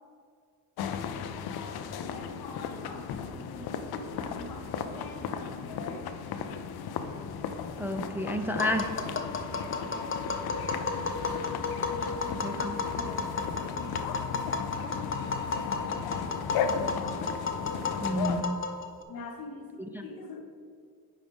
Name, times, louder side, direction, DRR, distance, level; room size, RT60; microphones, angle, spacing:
sound 1, 0.8-18.4, left 6 dB, 85° left, 0.5 m, -35 dB
voice 1, 2.1-6.1 9.5-10.3 11.9-14.7 19.1-20.4, left 3 dB, 70° left, 3 dB, 1.0 m, -45 dB
voice 2, 7.8-8.9 12.4-12.8 18.0-18.6 19.8-20.1, equal, 5° right, 5 dB, 0.4 m, -31 dB
Tap, 8.6-19.0, left 4 dB, 35° left, 0.7 m, -33 dB
9.1 x 4.8 x 3.6 m, 2.2 s
cardioid pair, 80°, 36 cm